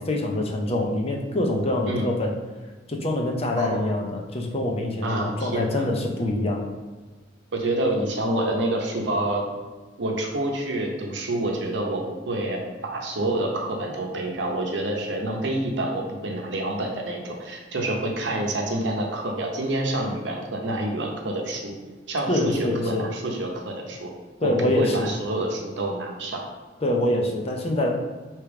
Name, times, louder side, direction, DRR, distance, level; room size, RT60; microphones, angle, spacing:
voice 1, 0.0-2.3 2.9-6.6 22.3-23.1 24.4-25.1 26.8-27.9, left 1 dB, 35° left, 1 dB, 0.6 m, -25 dB
voice 2, 3.6-3.9 5.0-5.9 7.5-9.4 10.0-21.7 22.1-24.1 24.4-26.4, right 1 dB, 75° right, 1 dB, 0.8 m, -27 dB
3.4 x 2.9 x 4.7 m, 1.3 s
head